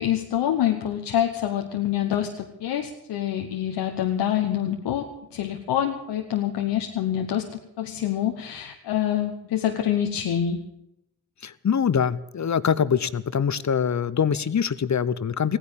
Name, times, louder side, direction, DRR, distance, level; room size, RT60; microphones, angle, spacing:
voice 1, 0.0-10.6, left 10 dB, 85° left, 4 dB, 1.1 m, -26 dB
voice 2, 11.4-15.6, left 7 dB, 45° left, 16 dB, 0.9 m, -24 dB
15.5 x 10.0 x 8.8 m, 0.86 s
supercardioid pair, 45°, 40 cm